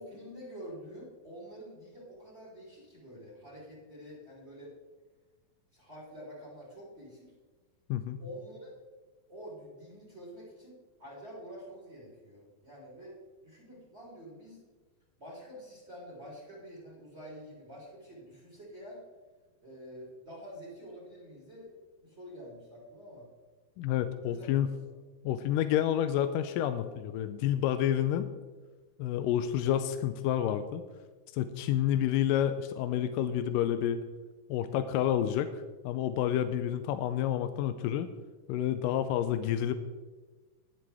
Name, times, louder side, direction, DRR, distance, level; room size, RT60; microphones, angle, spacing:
voice 1, 0.0-4.7 5.7-7.3 8.2-8.7 9.3-14.6 15.2-19.0 19.6-21.7 22.0-23.3 24.3-24.5 24.8-24.9 29.3-29.5 31.6-32.0, equal, 20° right, -4 dB, 3.3 m, -48 dB
voice 2, 7.9-8.2 23.8-24.7 25.2-28.3 29.0-30.8 31.3-34.0 34.5-35.5 35.8-38.1 38.5-39.7, left 11 dB, 80° left, 10 dB, 2.0 m, -29 dB
20.5 x 7.8 x 3.5 m, 1.3 s
omnidirectional pair, 4.2 m